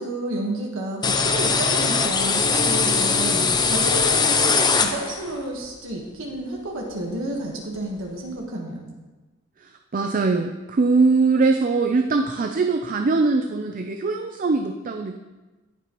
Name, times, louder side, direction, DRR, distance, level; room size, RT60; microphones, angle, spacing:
voice 1, 0.0-8.9, right 1 dB, 70° right, -1 dB, 1.5 m, -31 dB
sound 1, 1.0-5.4, left 4 dB, 20° left, 0.5 m, -21 dB
voice 2, 9.6-15.2, right 3 dB, 40° right, 4 dB, 0.5 m, -22 dB
18.0 x 6.1 x 3.0 m, 1.2 s
head